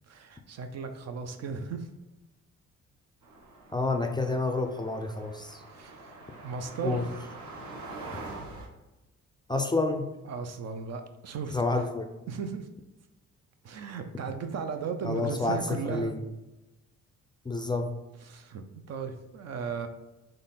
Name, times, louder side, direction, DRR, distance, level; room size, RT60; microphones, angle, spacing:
voice 1, 0.1-1.9 5.7-7.1 10.3-11.6 12.3-12.7 13.6-16.2 18.2-19.9, right 5 dB, 60° right, 7 dB, 0.6 m, -36 dB
sound 1, 3.2-8.7, right 2 dB, 75° right, 1.0 m, -44 dB
voice 2, 3.7-5.6 6.8-7.1 9.5-10.1 11.5-12.1 15.0-16.2 17.5-17.9, left 3 dB, 15° left, 5 dB, 0.4 m, -29 dB
4.0 x 3.2 x 4.1 m, 1.0 s
cardioid pair, 90°, 30 cm